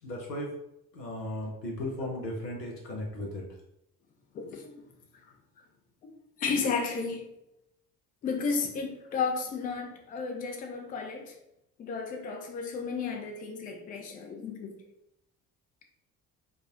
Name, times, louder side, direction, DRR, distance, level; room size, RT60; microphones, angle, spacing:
voice 1, 0.0-0.5 0.9-3.4, left 1 dB, 90° left, 0.6 m, -36 dB
voice 2, 4.3-4.8 6.0-7.2 8.2-11.4 11.8-14.7, left 5 dB, 20° left, 0.3 m, -33 dB
3.5 x 2.0 x 2.3 m
figure-of-eight pair, 50°, 49 cm